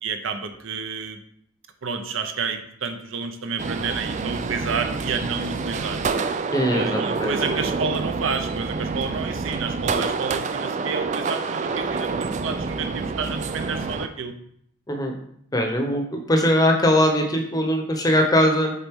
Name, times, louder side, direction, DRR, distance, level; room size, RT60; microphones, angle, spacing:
voice 1, 0.0-1.2 1.8-6.0 6.7-14.3, right 5 dB, 70° right, 7 dB, 0.7 m, -30 dB
sound 1, 3.6-14.1, right 4 dB, 35° right, 0.3 m, -27 dB
voice 2, 6.5-7.3 14.9-15.1 15.5-18.7, equal, 15° left, 2 dB, 0.8 m, -21 dB
7.6 x 4.0 x 3.6 m, 0.69 s
head